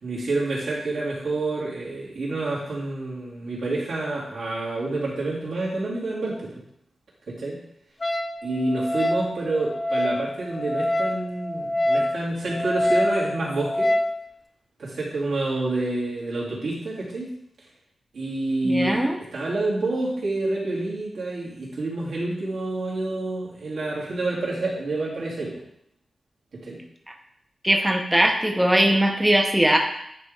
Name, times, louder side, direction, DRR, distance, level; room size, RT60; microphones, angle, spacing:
voice 1, 0.0-6.5 7.3-7.6 8.4-13.9 14.8-17.3 18.1-25.6 26.6-26.8, right 2 dB, 85° right, -7 dB, 2.7 m, -28 dB
Wind instrument woodwind instrument, 8.0-14.2, left 1 dB, 30° left, 0.5 m, -26 dB
voice 2, 18.6-19.2 27.6-29.8, right 1 dB, 5° right, 1 dB, 0.8 m, -20 dB
9.6 x 3.9 x 3.4 m, 0.75 s
wide cardioid pair, 85°, 0 cm